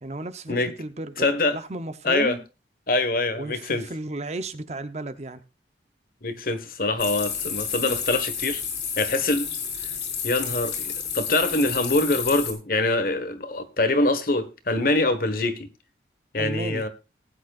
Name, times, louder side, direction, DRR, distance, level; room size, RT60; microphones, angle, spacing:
voice 1, 0.0-2.4 3.3-5.4 16.4-16.8, right 2 dB, 40° right, 11 dB, 0.8 m, -34 dB
voice 2, 1.2-1.6 2.0-2.4 2.9-3.8 6.2-8.6 9.0-9.5 10.2-15.7 16.3-16.9, left 2 dB, 50° left, 10 dB, 1.4 m, -24 dB
sound 1, 7.0-12.5, left 7 dB, 75° left, 4.0 m, -30 dB
18.5 x 9.1 x 2.5 m, 0.29 s
head